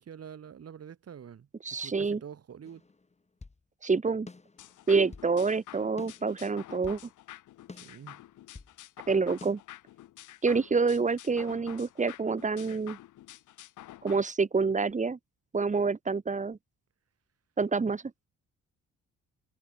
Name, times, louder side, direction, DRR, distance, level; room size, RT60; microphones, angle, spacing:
voice 1, 0.0-2.8 7.7-8.2, right 8 dB, 55° right, 6.0 m, -46 dB
voice 2, 1.6-2.2 3.8-4.3 4.9-7.0 9.1-9.6 10.4-13.0 14.0-15.2 15.5-16.6 17.6-18.0, right 4 dB, 25° right, 1.7 m, -27 dB
sound 1, 2.6-3.6 4.3-5.3 6.0-7.1 7.7-8.8 9.4-9.5, left 3 dB, 20° left, 4.3 m, -49 dB
sound 2, 4.6-14.2, left 14 dB, 80° left, 2.1 m, -49 dB
cardioid pair, 90°, 30 cm